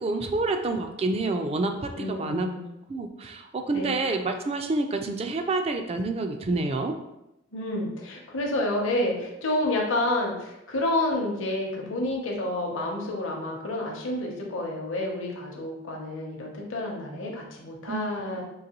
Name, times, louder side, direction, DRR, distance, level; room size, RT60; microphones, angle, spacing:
voice 1, 0.0-2.5 2.9-7.0 17.9-18.4, right 3 dB, 30° right, 6 dB, 0.3 m, -28 dB
voice 2, 2.0-2.6 3.7-3.9 7.5-18.4, left 1 dB, 65° left, -1 dB, 0.7 m, -29 dB
3.9 x 2.9 x 2.9 m, 0.89 s
head